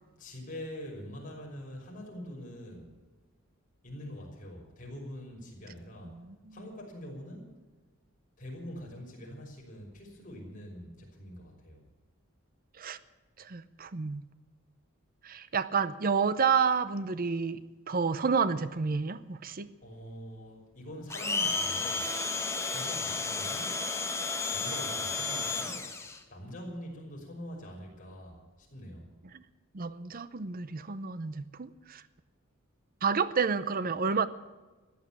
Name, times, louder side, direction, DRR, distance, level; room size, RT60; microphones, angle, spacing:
voice 1, 0.2-2.9 3.8-6.2 6.5-7.5 8.4-11.8 19.8-22.1 22.7-23.7 24.5-29.1, equal, 40° left, -1 dB, 5.9 m, -44 dB
voice 2, 6.1-6.5 12.8-13.0 13.4-14.2 15.2-17.6 17.9-19.7 29.3-29.4 29.7-32.0 33.0-34.3, right 5 dB, 45° right, 14 dB, 0.7 m, -30 dB
Domestic sounds home sounds, 21.1-26.2, left 4 dB, 15° left, 1.5 m, -32 dB
14.5 x 10.5 x 8.8 m, 1.2 s
head